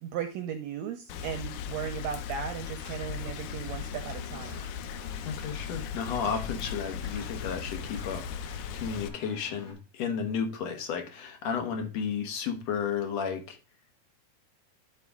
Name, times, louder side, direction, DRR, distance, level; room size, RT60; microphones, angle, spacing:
voice 1, 0.0-4.6, right 8 dB, 75° right, 5 dB, 1.9 m, -36 dB
Rain, 1.1-9.1, left 8 dB, 80° left, 2.0 m, -38 dB
sound 1, 2.0-2.2 2.8-3.0 3.6-4.2 4.4-4.8 5.3-5.6 6.1-6.5 6.9-7.3 7.8-8.2, right 4 dB, 40° right, 2.2 m, -55 dB
Engine, 3.9-9.7, left 6 dB, 45° left, 1.8 m, -48 dB
voice 2, 5.2-13.6, left 6 dB, 65° left, 5 dB, 2.2 m, -33 dB
11.0 x 4.1 x 3.5 m, 0.30 s
omnidirectional pair, 3.4 m